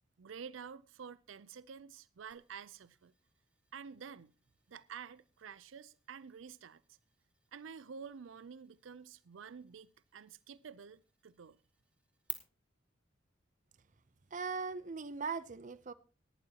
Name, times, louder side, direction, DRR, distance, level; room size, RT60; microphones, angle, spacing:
voice 1, 0.2-3.1 3.7-4.3 4.7-7.0 7.5-11.6, right 6 dB, 85° right, 0.5 m, -50 dB
sound 1, 2.3-12.3, right 3 dB, 5° right, 1.3 m, -55 dB
voice 2, 14.3-15.9, right 5 dB, 40° right, 0.6 m, -39 dB
18.0 x 11.5 x 2.9 m
head